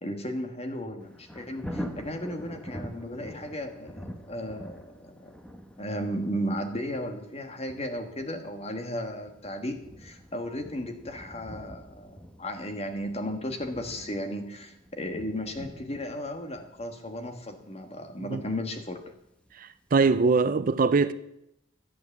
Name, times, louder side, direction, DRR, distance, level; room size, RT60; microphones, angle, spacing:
voice 1, 0.0-5.4 5.8-19.0, equal, 30° left, 1.4 m, -35 dB
Thunder, 1.0-19.8 20.2-20.3, equal, 5° left, 1.0 m, -45 dB
voice 2, 19.6-21.1, right 4 dB, 45° right, 0.4 m, -23 dB
11.5 x 7.8 x 7.2 m
head